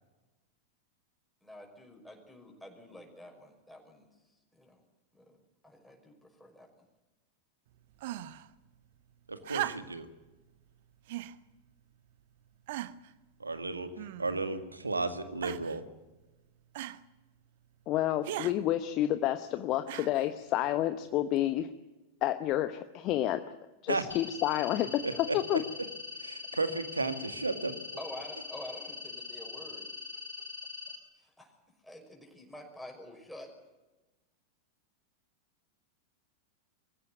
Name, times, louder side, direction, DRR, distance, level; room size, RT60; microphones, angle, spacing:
voice 1, 1.4-4.1 4.5-4.8 5.1-5.4 5.6-6.7 28.0-29.9 31.2-31.5 31.8-33.5, left 1 dB, 5° left, 1 dB, 5.7 m, -48 dB
sound 1, 8.0-8.5 9.4-10.1 11.1-11.4 12.1-12.2 12.7-13.1 14.0-14.5 15.4-15.8 16.7-17.0 18.2-18.6 19.9-20.3 21.4-21.5, right 15 dB, 50° right, 1.0 m, -38 dB
voice 2, 9.3-10.1 13.4-13.9 14.2-15.8 23.9-24.0 25.0-25.1 26.2-27.7, right 3 dB, 80° right, 9 dB, 2.0 m, -33 dB
voice 3, 17.9-21.7 22.2-23.4 23.8-25.6, left 13 dB, 40° left, 10 dB, 1.0 m, -29 dB
sound 2, 24.1-30.9, left 4 dB, 75° left, 4.5 m, -43 dB
23.0 x 15.5 x 9.2 m, 1.1 s
figure-of-eight pair, 90°, 0 cm